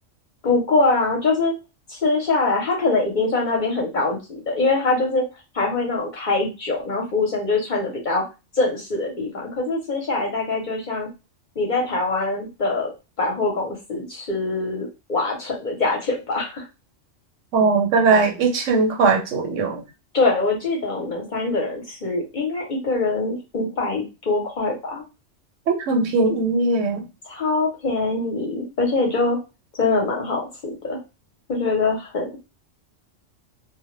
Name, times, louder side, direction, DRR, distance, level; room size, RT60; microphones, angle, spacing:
voice 1, 0.4-1.5 1.9-5.2 5.5-8.2 8.5-11.1 11.6-12.9 13.2-16.7 20.1-25.0 27.3-29.4 29.8-31.0 31.5-32.3, left 3 dB, 45° left, -1 dB, 0.7 m, -23 dB
voice 2, 17.5-19.8 25.7-27.0, right 4 dB, 85° right, 3 dB, 1.0 m, -19 dB
2.1 x 2.1 x 3.0 m, 0.27 s
omnidirectional pair, 1.2 m